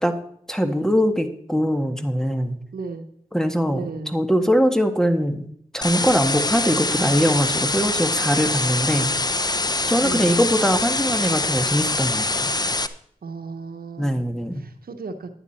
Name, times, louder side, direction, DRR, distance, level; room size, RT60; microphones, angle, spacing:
voice 1, 0.5-2.6 3.3-3.8 4.1-5.5 5.7-9.1 9.9-12.5 14.0-14.6, equal, 5° left, 6 dB, 1.6 m, -21 dB
voice 2, 2.7-3.0 3.7-4.2 10.0-10.3 13.2-14.2 14.5-15.3, right 4 dB, 90° right, 8 dB, 1.0 m, -35 dB
sound 1, 5.8-12.9, left 2 dB, 25° left, 0.7 m, -24 dB
11.0 x 9.7 x 4.3 m, 0.68 s
cardioid pair, 40°, 15 cm